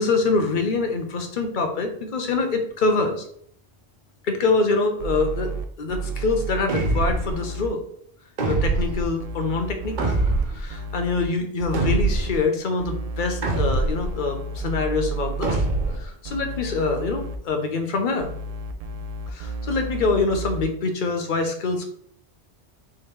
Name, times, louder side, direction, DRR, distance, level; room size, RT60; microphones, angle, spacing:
voice 1, 0.0-3.2 4.2-5.5 5.8-7.8 8.4-10.1 10.5-15.6 16.0-18.3 19.3-21.9, left 3 dB, 50° left, 4 dB, 0.8 m, -25 dB
sound 1, 5.0-7.7 8.6-11.2 11.6-12.3 12.8-16.0 16.2-17.4 18.2-20.6, right 2 dB, 65° right, 0.3 m, -32 dB
sound 2, 6.7-7.4 8.4-9.0 10.0-10.6 11.7-12.4 13.4-14.1 15.4-16.1, right 3 dB, 45° right, 0.8 m, -23 dB
3.7 x 3.3 x 4.3 m, 0.62 s
omnidirectional pair, 1.2 m